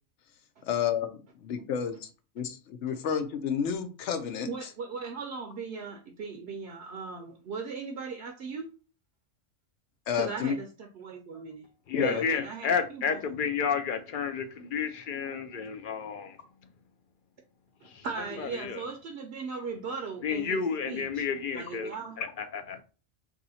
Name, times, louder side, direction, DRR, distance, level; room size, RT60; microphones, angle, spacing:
voice 1, 0.7-2.1 2.4-4.5 10.1-10.5 11.9-12.2, left 7 dB, 85° left, 1.0 m, -30 dB
voice 2, 4.5-8.7 10.2-11.7 12.0-13.3 18.0-20.6 20.9-21.3 21.5-22.1, right 4 dB, 70° right, 0.8 m, -38 dB
voice 3, 11.9-16.4 18.4-18.8 20.2-21.9 22.4-22.8, left 6 dB, 60° left, 0.6 m, -31 dB
2.8 x 2.7 x 4.1 m
omnidirectional pair, 1.2 m